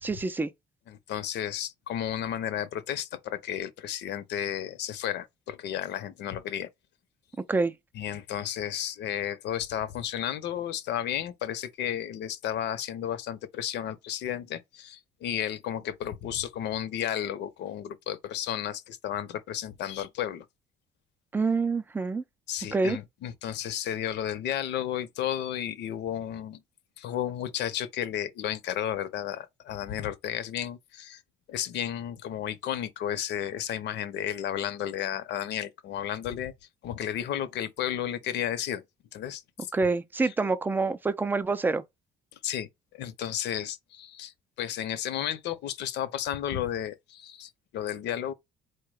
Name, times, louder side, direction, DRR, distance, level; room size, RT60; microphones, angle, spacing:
voice 1, 0.0-0.5 7.5-7.7 21.3-22.2 22.7-23.0 39.7-41.8, right 3 dB, 10° right, 0.4 m, -26 dB
voice 2, 0.9-6.7 7.9-20.5 22.5-26.6 27.0-31.2 31.5-36.5 36.8-38.8 39.1-39.7 40.2-40.3 42.4-48.3, left 10 dB, 70° left, 0.8 m, -33 dB
4.6 x 2.2 x 4.7 m
cardioid pair, 160°, 18 cm